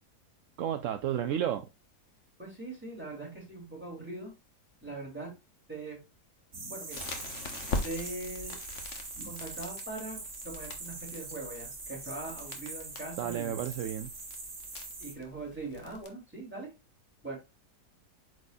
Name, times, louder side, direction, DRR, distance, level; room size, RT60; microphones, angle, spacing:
voice 1, 0.6-1.7 13.2-14.1, right 10 dB, 65° right, 0.8 m, -32 dB
voice 2, 2.4-4.3 4.8-5.3 5.7-6.0 6.7-7.0 7.8-8.6 9.2-13.6 15.0-16.7 17.2-17.4, right 2 dB, 5° right, 3.6 m, -41 dB
sound 1, 6.5-15.1, right 3 dB, 50° right, 2.1 m, -43 dB
Crackle, 6.9-16.1, left 3 dB, 50° left, 1.4 m, -42 dB
8.1 x 4.9 x 2.6 m
omnidirectional pair, 1.8 m